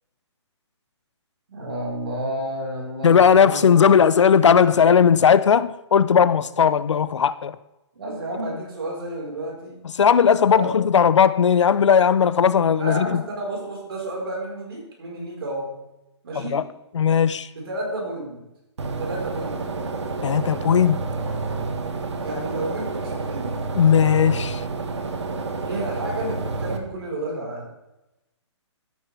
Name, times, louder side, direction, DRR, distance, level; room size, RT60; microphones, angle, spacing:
voice 1, 1.5-3.8 7.9-9.8 10.4-10.7 12.8-15.8 16.2-16.6 17.5-18.4 18.8-19.8 22.2-23.6 25.6-27.7, right 1 dB, 55° right, 4.6 m, -31 dB
voice 2, 3.0-7.6 10.0-13.2 16.4-16.6 16.9-17.5 20.2-21.0 23.7-24.6, left 7 dB, 75° left, 0.6 m, -17 dB
sound 1, 18.8-26.8, right 3 dB, 70° right, 1.7 m, -29 dB
13.5 x 9.2 x 3.4 m
hypercardioid pair, 175°, 15 cm